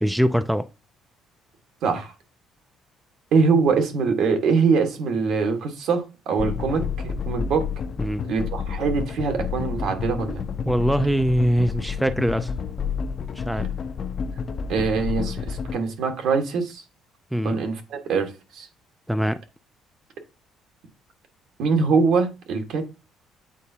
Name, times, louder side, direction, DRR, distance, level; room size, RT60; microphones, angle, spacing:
voice 1, 0.0-0.7 8.0-8.2 10.7-12.5 13.4-13.7 17.3-17.6 19.1-19.4, equal, ahead, 0.3 m, -22 dB
voice 2, 1.8-2.1 3.3-7.7 8.3-10.4 14.7-16.8 17.4-18.7 21.6-22.8, right 5 dB, 70° right, 1.5 m, -23 dB
sound 1, 6.4-15.8, left 6 dB, 45° left, 0.6 m, -30 dB
8.2 x 4.5 x 2.8 m
cardioid pair, 130°, 0 cm